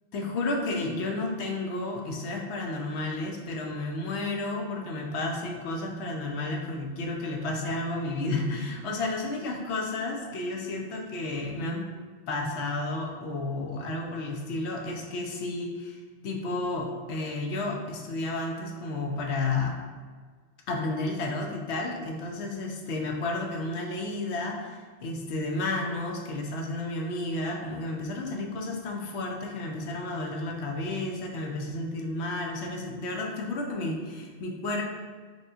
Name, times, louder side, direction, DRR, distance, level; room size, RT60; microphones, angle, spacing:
voice 1, 0.1-11.9 12.3-16.0 16.2-19.8 20.7-34.8, left 2 dB, 75° left, 1 dB, 0.9 m, -32 dB
4.9 x 3.0 x 2.4 m, 1.5 s
omnidirectional pair, 1.1 m